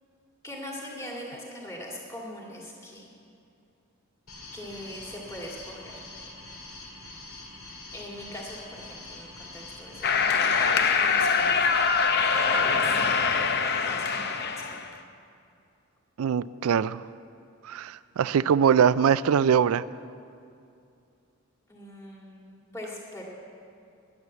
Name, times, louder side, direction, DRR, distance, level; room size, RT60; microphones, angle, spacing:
voice 1, 0.4-3.0 4.5-6.0 7.9-11.7 12.3-13.4 13.7-14.9 21.7-23.2, left 1 dB, 15° left, -3 dB, 2.1 m, -41 dB
sound 1, 4.3-13.6, left 2 dB, 80° left, 2.4 m, -45 dB
sound 2, 10.0-14.9, left 5 dB, 50° left, 0.6 m, -24 dB
voice 2, 16.2-17.0 17.7-19.8, right 7 dB, 85° right, 18 dB, 0.4 m, -22 dB
10.5 x 9.6 x 8.2 m, 2.5 s
head